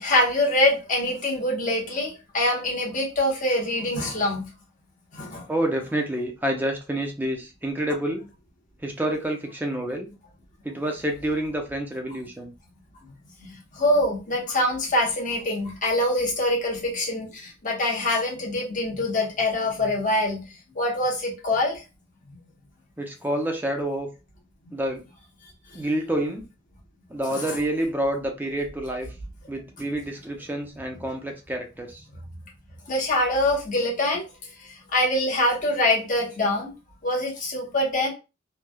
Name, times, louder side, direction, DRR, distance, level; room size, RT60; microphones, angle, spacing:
voice 1, 0.0-4.5 5.1-5.4 13.8-20.4 20.7-21.8 27.3-27.4 32.9-34.3 34.9-36.7 37.0-38.1, left 1 dB, 45° left, -2 dB, 1.0 m, -24 dB
voice 2, 5.5-8.2 8.8-10.1 10.6-12.5 23.0-24.1 24.7-25.0 25.7-26.4 27.1-29.1 29.5-32.0, right 1 dB, 10° right, 2 dB, 0.5 m, -28 dB
3.2 x 2.2 x 2.3 m, 0.29 s
head